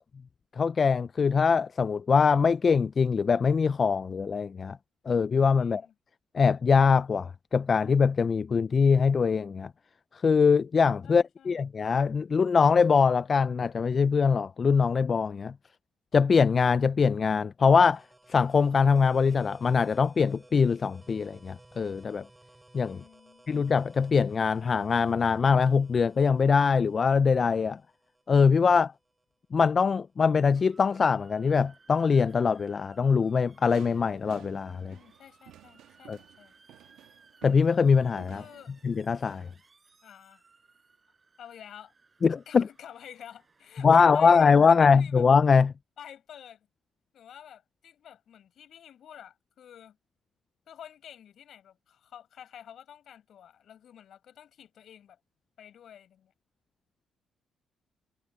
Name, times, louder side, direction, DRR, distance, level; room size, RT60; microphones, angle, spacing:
voice 1, 0.6-4.8 5.1-5.8 6.3-9.7 10.2-15.5 16.1-18.0 18.3-22.2 22.7-23.0 23.5-27.8 28.3-28.9 29.5-35.0 36.1-36.2 37.4-38.4 38.8-39.5 42.2-42.7 43.8-45.7, left 5 dB, 40° left, 0.3 m, -23 dB
voice 2, 5.6-5.9 11.0-11.5 22.9-23.5 34.9-36.5 38.3-38.9 40.0-40.4 41.4-41.9 42.5-45.3 46.0-46.7 47.1-50.0 50.7-55.2 55.6-56.3, left 9 dB, 65° left, 7.6 m, -49 dB
sound 1, 17.9-29.3, right 2 dB, 15° right, 5.8 m, -58 dB
Motor vehicle (road) / Siren, 30.5-45.0, right 4 dB, 30° right, 5.7 m, -62 dB
sound 2, 33.7-39.5, right 12 dB, 85° right, 2.0 m, -54 dB
cardioid pair, 90°, 0 cm